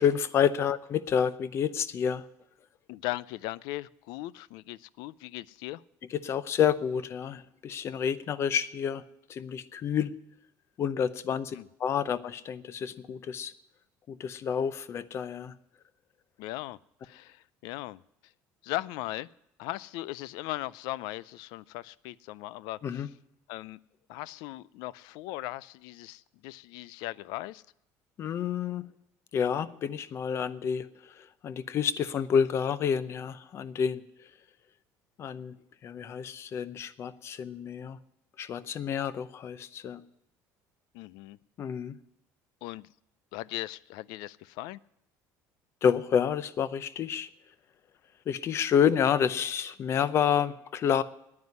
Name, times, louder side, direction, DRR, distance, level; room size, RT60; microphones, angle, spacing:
voice 1, 0.0-2.2 6.1-9.0 9.3-10.1 10.8-13.5 14.1-15.5 22.8-23.1 28.2-28.8 29.3-30.9 31.2-34.0 35.2-35.6 35.8-38.0 38.4-40.0 41.6-42.0 45.8-47.3 48.3-51.0, left 8 dB, 40° left, 16 dB, 0.7 m, -29 dB
voice 2, 2.9-5.8 11.5-11.7 16.4-18.3 18.6-19.3 19.6-23.1 23.5-23.8 24.1-27.6 40.9-41.4 42.6-42.9 43.3-44.8, left 17 dB, 80° left, 22 dB, 0.4 m, -38 dB
9.7 x 9.6 x 9.5 m, 0.79 s
cardioid pair, 145°, 7 cm